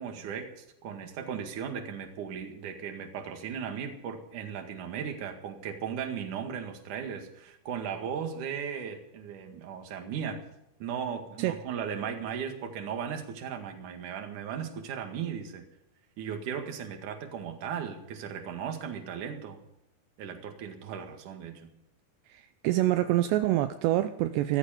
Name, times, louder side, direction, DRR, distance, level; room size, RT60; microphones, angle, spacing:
voice 1, 0.0-10.4 10.8-15.6 16.2-19.6 20.2-21.7, right 7 dB, 50° right, 4 dB, 2.7 m, -37 dB
voice 2, 22.3-24.6, right 14 dB, 85° right, 9 dB, 2.5 m, -26 dB
16.0 x 14.5 x 5.2 m, 0.81 s
omnidirectional pair, 5.7 m